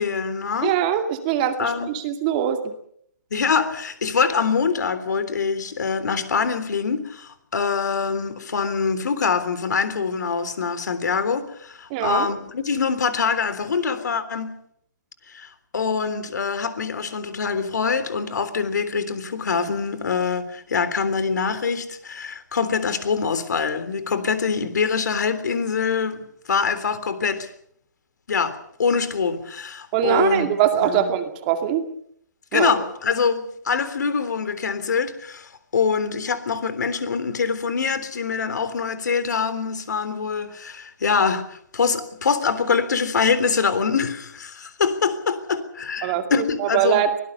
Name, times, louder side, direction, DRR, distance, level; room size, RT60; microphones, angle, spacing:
voice 1, 0.0-0.7 1.6-1.9 3.3-14.5 15.3-26.2 26.5-27.5 28.3-30.5 30.8-31.1 32.5-47.0, left 5 dB, 70° left, 3.5 m, -24 dB
voice 2, 0.6-2.7 11.9-12.3 29.9-31.9 32.5-32.7 46.0-47.2, right 10 dB, 25° right, 2.4 m, -22 dB
24.0 x 18.5 x 6.9 m
hypercardioid pair, 160°, 10 cm